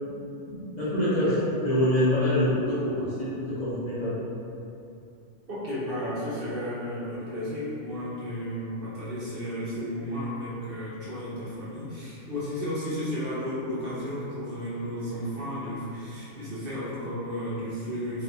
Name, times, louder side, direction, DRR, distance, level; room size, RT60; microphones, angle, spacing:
voice 1, 0.5-4.2, left 1 dB, 40° left, -11 dB, 0.9 m, -25 dB
voice 2, 5.5-18.2, equal, 55° right, -9 dB, 1.0 m, -33 dB
2.8 x 2.7 x 3.5 m, 2.7 s
omnidirectional pair, 1.2 m